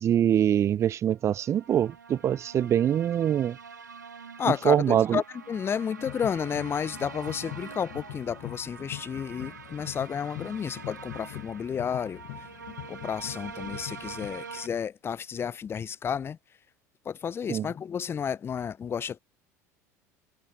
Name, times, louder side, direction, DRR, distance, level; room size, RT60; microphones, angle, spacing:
voice 1, 0.0-3.6 4.7-5.2 17.5-17.7, right 10 dB, 30° right, 0.4 m, -24 dB
sound 1, 1.3-14.7, right 6 dB, 80° right, 1.4 m, -45 dB
voice 2, 4.4-12.2 12.9-16.4 17.0-19.2, left 7 dB, 25° left, 0.5 m, -31 dB
sound 2, 6.0-14.8, left 30 dB, 60° left, 1.3 m, -43 dB
figure-of-eight pair, 70°, 9 cm